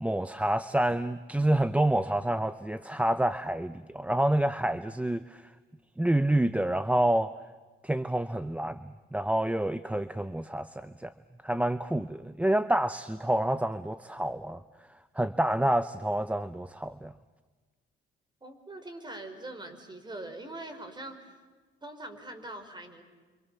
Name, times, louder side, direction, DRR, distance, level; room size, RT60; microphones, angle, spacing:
voice 1, 0.0-5.4 6.0-7.3 7.8-11.1 11.4-14.6 15.2-17.1, right 1 dB, 5° right, 13 dB, 0.7 m, -28 dB
voice 2, 18.4-21.3 21.8-23.0, right 1 dB, 20° right, 7 dB, 5.1 m, -42 dB
29.0 x 25.5 x 7.0 m, 1.4 s
cardioid pair, 90°, 20 cm